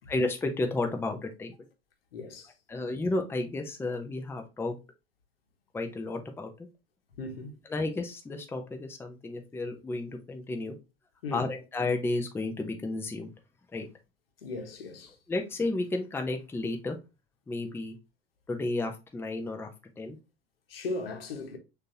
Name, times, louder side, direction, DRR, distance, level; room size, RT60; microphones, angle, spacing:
voice 1, 0.1-1.5 2.7-4.8 5.7-6.7 7.7-10.8 11.3-13.3 13.7-13.9 15.3-17.0 17.5-18.0 18.5-19.7 20.0-20.2, left 2 dB, 5° left, 0.7 m, -32 dB
voice 2, 2.1-2.5 7.2-7.6 11.2-11.4 14.4-15.2 20.7-21.6, left 3 dB, 70° left, 1.1 m, -37 dB
6.2 x 2.8 x 2.8 m
figure-of-eight pair, 75°, 30 cm